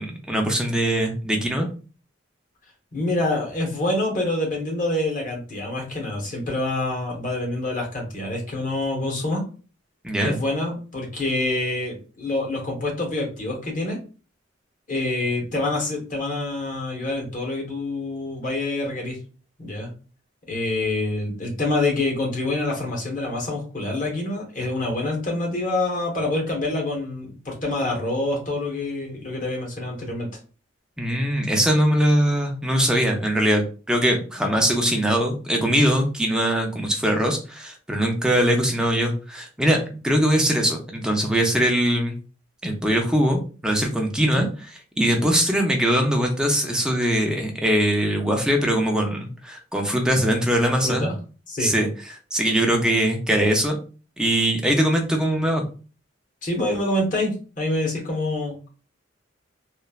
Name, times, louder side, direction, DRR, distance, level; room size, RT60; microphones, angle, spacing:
voice 1, 0.0-1.7 10.0-10.4 31.0-42.2 42.6-44.5 45.0-51.1 51.6-51.9 52.3-53.8 54.2-55.7, equal, 5° right, 1 dB, 0.4 m, -21 dB
voice 2, 2.9-9.5 10.2-14.0 14.9-19.2 19.6-19.9 20.5-30.3 44.3-44.4 50.6-51.2 51.5-51.7 56.4-58.7, left 2 dB, 45° left, 0 dB, 1.0 m, -26 dB
3.0 x 2.1 x 2.3 m, 0.36 s
head